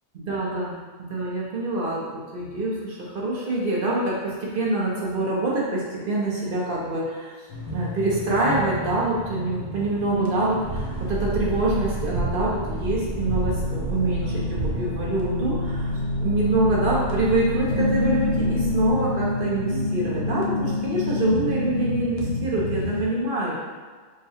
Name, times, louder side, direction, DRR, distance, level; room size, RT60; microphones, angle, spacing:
voice 1, 0.1-0.8 1.1-7.3 7.7-15.9 16.2-23.5, right 2 dB, 45° right, -5 dB, 0.8 m, -25 dB
sound 1, 7.5-23.0, left 2 dB, 60° left, 0.8 m, -29 dB
sound 2, 10.6-18.9, right 1 dB, 80° right, 1.3 m, -31 dB
3.7 x 2.2 x 4.1 m, 1.5 s
omnidirectional pair, 1.5 m